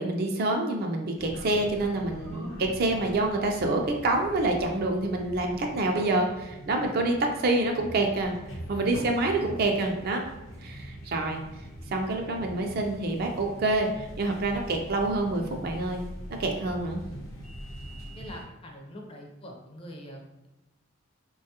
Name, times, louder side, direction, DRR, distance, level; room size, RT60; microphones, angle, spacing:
voice 1, 0.0-8.3 8.7-10.2 10.6-11.4 11.9-16.0 16.3-17.0, right 2 dB, 45° right, 2 dB, 0.3 m, -27 dB
sound 1, 1.2-18.4, equal, 80° left, 0.7 m, -43 dB
sound 2, 5.9-7.4 8.9-10.5, equal, 80° right, 0.7 m, -48 dB
voice 2, 18.1-20.5, equal, 25° left, 0 dB, 0.4 m, -44 dB
3.1 x 2.3 x 2.8 m, 0.97 s
head